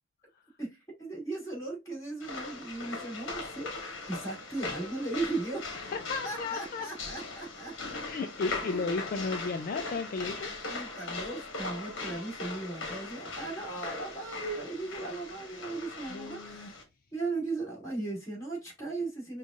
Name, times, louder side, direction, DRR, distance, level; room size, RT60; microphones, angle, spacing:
voice 1, 0.6-3.7 4.1-5.7 6.2-7.7 10.5-16.8 17.1-19.4, right 2 dB, 15° left, 2.3 m, -37 dB
sound 1, 2.2-16.8, left 3 dB, 60° left, 1.1 m, -40 dB
voice 2, 5.8-6.9 7.9-10.5 16.1-16.7, left 4 dB, 40° left, 0.3 m, -34 dB
5.4 x 2.4 x 2.4 m
head